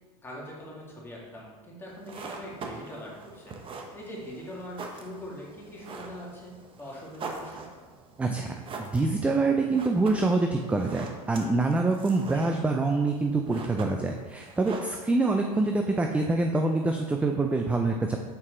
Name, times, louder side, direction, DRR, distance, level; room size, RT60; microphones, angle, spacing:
voice 1, 0.2-7.7 12.3-12.4, equal, 10° left, -4 dB, 1.8 m, -42 dB
sound 1, 1.9-15.5, right 3 dB, 30° right, 0.8 m, -43 dB
voice 2, 8.2-8.5 8.8-18.2, right 3 dB, 5° right, 3 dB, 0.3 m, -25 dB
6.7 x 4.2 x 3.8 m, 1.3 s
hypercardioid pair, 110°, 19 cm